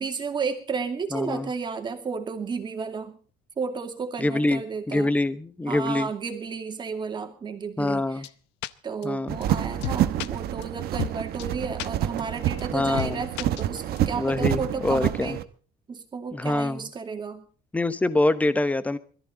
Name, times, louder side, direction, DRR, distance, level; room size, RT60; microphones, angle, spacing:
voice 1, 0.0-3.2 3.6-5.1 5.7-8.2 8.8-15.4 15.9-17.4, right 5 dB, 25° right, 5 dB, 2.5 m, -32 dB
voice 2, 1.1-1.5 4.2-6.1 7.8-8.3 9.0-9.4 12.7-13.2 14.2-15.4 16.3-16.8 17.7-19.0, left 2 dB, 10° left, 14 dB, 1.0 m, -25 dB
sound 1, 8.2-8.3 8.6-8.7 9.0-9.1 9.4-9.5 9.8-10.3 10.6-10.7 11.0-11.1 11.4-11.5 11.8-11.9 12.2-12.3 12.6-12.7 13.0-13.1 13.4-14.0, left 15 dB, 85° left, 0.8 m, -31 dB
sound 2, 9.3-15.4, right 12 dB, 60° right, 1.2 m, -28 dB
21.5 x 14.0 x 3.8 m, 0.40 s
cardioid pair, 150°, 18 cm